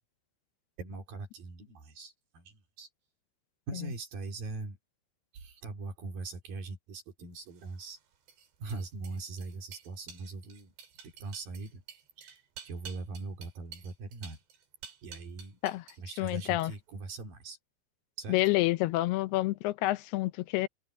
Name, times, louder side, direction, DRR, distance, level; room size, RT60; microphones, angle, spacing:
voice 1, 0.8-2.9 3.7-4.8 5.3-8.0 8.6-10.7 11.0-11.8 12.2-14.4 15.0-15.6 16.0-17.6 18.2-18.4, right 3 dB, 60° right, 5.5 m, -41 dB
sound 1, 7.5-16.0 16.3-16.7, right 7 dB, 85° right, 5.2 m, -51 dB
voice 2, 16.2-16.7 18.3-20.7, left 18 dB, 80° left, 2.7 m, -28 dB
omnidirectional pair, 4.7 m